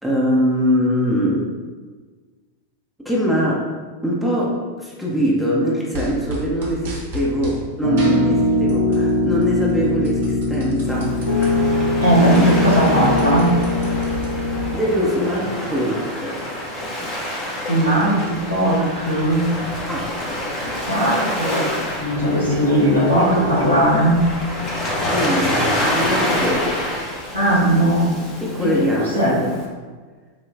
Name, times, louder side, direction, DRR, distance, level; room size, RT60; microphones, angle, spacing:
voice 1, 0.0-1.5 3.0-3.7 4.0-11.2 14.7-16.5 19.9-20.1 24.9-27.0 28.4-29.6, equal, ahead, -5 dB, 0.9 m, -22 dB
sound 1, 5.9-7.6 8.0-9.1 9.4-11.5 11.9-12.0 12.2-14.7, equal, 60° right, 1.1 m, -34 dB
Piano, 7.8-14.7, left 2 dB, 85° right, 0.7 m, -21 dB
Waves surf, 10.9-29.7, left 1 dB, 30° left, 1.0 m, -27 dB
voice 2, 12.0-13.5 17.7-19.5 20.9-21.6 22.0-24.2 27.3-28.1 28.6-28.7 29.0-29.3, right 1 dB, 85° left, -6 dB, 1.4 m, -18 dB
5.8 x 2.4 x 3.5 m, 1.4 s
figure-of-eight pair, 90°, 0 cm